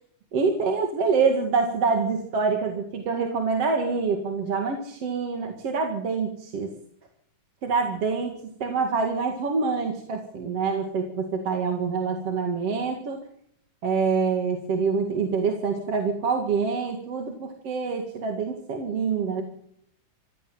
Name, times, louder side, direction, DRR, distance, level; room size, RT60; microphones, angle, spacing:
voice 1, 0.3-6.7 7.6-13.2 13.8-19.4, right 5 dB, 55° right, 4 dB, 3.1 m, -26 dB
24.5 x 16.0 x 7.8 m, 0.71 s
omnidirectional pair, 3.5 m